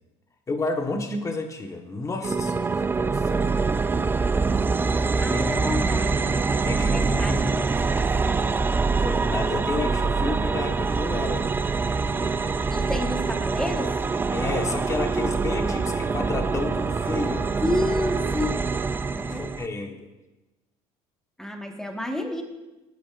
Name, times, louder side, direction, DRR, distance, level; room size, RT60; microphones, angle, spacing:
voice 1, 0.5-3.5 5.2-5.6 6.6-7.6 9.0-11.4 11.8-12.5 14.3-17.5 19.2-20.1, left 3 dB, 25° left, 3 dB, 1.4 m, -31 dB
sound 1, 2.2-19.7, right 4 dB, 15° right, 0.3 m, -25 dB
sound 2, 3.3-18.3, right 7 dB, 60° right, 1.1 m, -42 dB
voice 2, 5.2-6.2 6.7-7.7 8.0-8.4 12.7-14.0 17.6-18.6 19.1-19.5 21.4-22.4, left 1 dB, 5° left, 2 dB, 1.6 m, -30 dB
18.0 x 8.9 x 2.6 m, 1.0 s
supercardioid pair, 105°, 14 cm